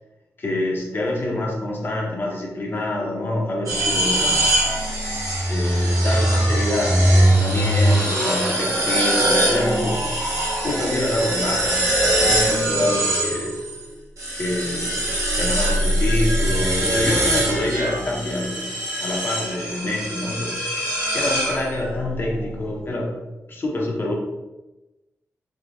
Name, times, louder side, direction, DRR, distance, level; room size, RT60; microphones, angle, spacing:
voice 1, 0.4-4.6 5.5-10.0 10.6-13.5 14.3-20.8 21.1-23.1 23.5-24.1, left 1 dB, 40° left, -1 dB, 0.7 m, -26 dB
sound 1, 3.7-13.8 14.2-22.0, right 1 dB, 85° right, 1.2 m, -22 dB
4.8 x 2.2 x 2.6 m, 1.0 s
wide cardioid pair, 145°, 6 cm